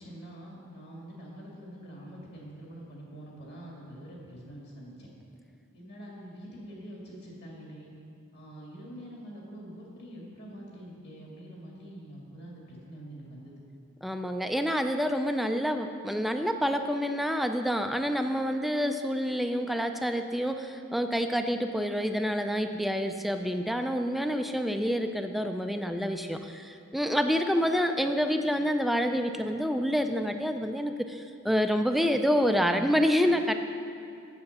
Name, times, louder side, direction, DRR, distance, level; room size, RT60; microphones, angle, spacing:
voice 1, 0.0-5.1 5.7-7.9 8.3-13.5, right 1 dB, 55° left, -3 dB, 2.4 m, -45 dB
voice 2, 14.0-33.5, equal, ahead, 6 dB, 0.3 m, -28 dB
8.2 x 7.7 x 6.7 m, 2.5 s
head